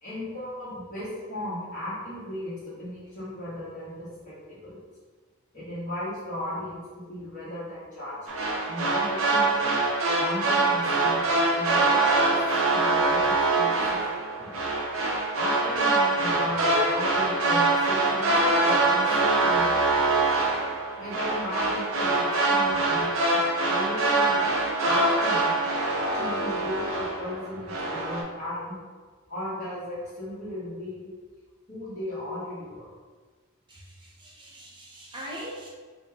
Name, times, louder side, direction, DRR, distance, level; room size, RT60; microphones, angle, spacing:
voice 1, 0.0-4.8 5.5-6.8 7.1-8.2 8.6-9.8 10.2-11.2 11.5-12.3 12.7-14.6 15.3-18.3 18.6-19.9 21.0-23.1 23.7-24.5 24.8-25.5 26.1-28.8 29.3-31.1 31.7-32.9, left 1 dB, 35° left, -12 dB, 1.4 m, -35 dB
sound 1, 8.3-27.4 27.7-28.2, right 2 dB, 65° right, 0.7 m, -24 dB
voice 2, 33.7-35.7, equal, 20° right, -4 dB, 0.8 m, -41 dB
4.5 x 2.3 x 3.5 m, 1.4 s
head